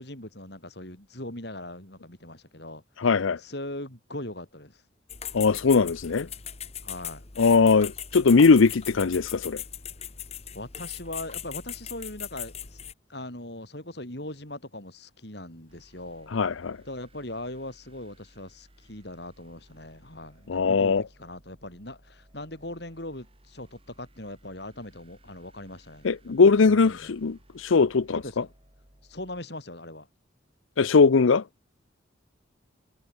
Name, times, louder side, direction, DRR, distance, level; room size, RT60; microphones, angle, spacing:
voice 1, 0.0-2.8 3.4-4.8 6.8-7.2 10.5-12.8 13.1-16.4 16.9-27.1 28.1-28.5 29.1-30.1, left 1 dB, 55° left, 5.9 m, -40 dB
voice 2, 3.0-3.4 5.3-6.3 7.4-9.6 16.3-16.8 20.5-21.0 26.0-28.4 30.8-31.4, left 4 dB, 90° left, 0.6 m, -20 dB
sound 1, 5.1-12.9, left 9 dB, 30° left, 1.4 m, -39 dB
sound 2, 15.7-29.4, right 1 dB, 30° right, 6.2 m, -59 dB
head